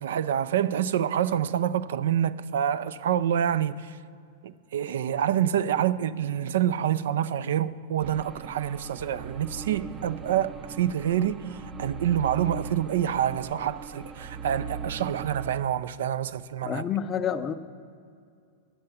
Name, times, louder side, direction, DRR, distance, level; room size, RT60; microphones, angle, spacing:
voice 1, 0.0-4.0 4.4-16.9, right 10 dB, 80° right, 0.4 m, -27 dB
sound 1, 8.0-15.6, right 5 dB, 20° right, 0.5 m, -39 dB
voice 2, 16.6-17.5, left 8 dB, 25° left, 0.5 m, -28 dB
10.0 x 6.6 x 7.1 m
hypercardioid pair, 135°, 0 cm